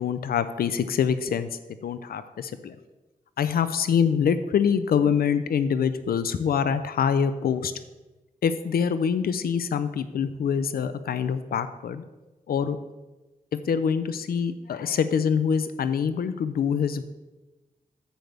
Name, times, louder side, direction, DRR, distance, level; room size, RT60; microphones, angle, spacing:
voice 1, 0.0-1.5 1.8-2.8 3.4-7.7 8.4-12.0 12.5-12.8 13.7-17.0, left 7 dB, 85° left, 12 dB, 0.5 m, -25 dB
10.0 x 8.0 x 3.4 m, 1.1 s
wide cardioid pair, 85°, 15 cm